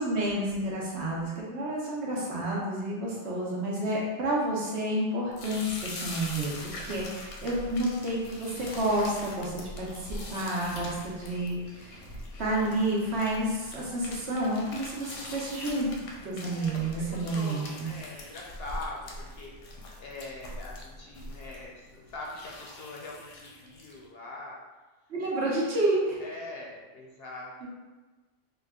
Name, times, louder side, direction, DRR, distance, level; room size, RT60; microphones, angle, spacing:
voice 1, 0.0-6.5 6.8-11.9 12.4-15.9 16.2-17.9 25.1-26.2 27.6-27.7, right 1 dB, 65° right, -4 dB, 1.1 m, -30 dB
sound 1, 5.3-24.0, left 2 dB, 90° left, 1.0 m, -43 dB
voice 2, 16.4-24.6 26.2-27.7, left 2 dB, 65° left, -2 dB, 0.7 m, -43 dB
3.5 x 2.3 x 3.6 m, 1.2 s
omnidirectional pair, 1.3 m